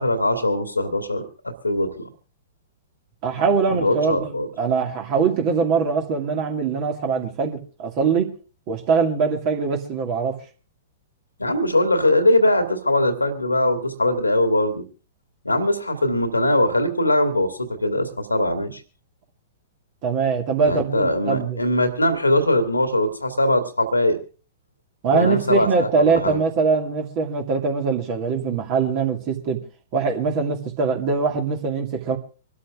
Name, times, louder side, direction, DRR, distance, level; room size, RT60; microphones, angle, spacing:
voice 1, 0.0-1.9 3.7-4.5 11.4-14.8 15.4-18.8 20.6-24.2 25.1-26.4, left 1 dB, 85° left, 7 dB, 2.1 m, -21 dB
voice 2, 3.2-4.3 4.6-8.3 8.7-10.4 20.0-21.6 25.0-29.6 29.9-32.2, right 5 dB, 40° right, 3 dB, 2.1 m, -22 dB
25.5 x 12.5 x 2.4 m, 0.37 s
figure-of-eight pair, 105°, 0 cm